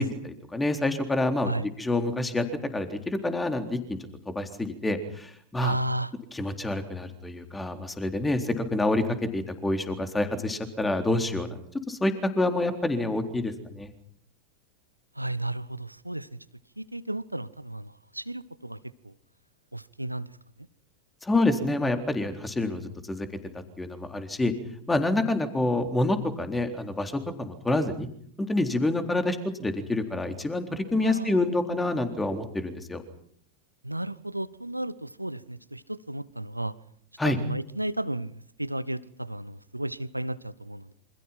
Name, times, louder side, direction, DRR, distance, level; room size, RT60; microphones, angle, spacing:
voice 1, 0.0-1.5 1.8-2.4 2.7-4.0 4.3-5.8 6.3-11.6 11.9-13.9 21.2-23.3 23.5-24.5 24.9-28.1 28.4-33.0 37.2-37.4, left 2 dB, 10° left, 6 dB, 3.9 m, -27 dB
voice 2, 5.6-6.1 15.1-16.3 16.8-18.8 19.0-19.1 19.7-20.3 31.0-31.4 33.8-36.7 37.2-40.9, right 1 dB, 85° right, 18 dB, 1.1 m, -33 dB
28.5 x 27.0 x 6.0 m, 0.63 s
figure-of-eight pair, 90°, 0 cm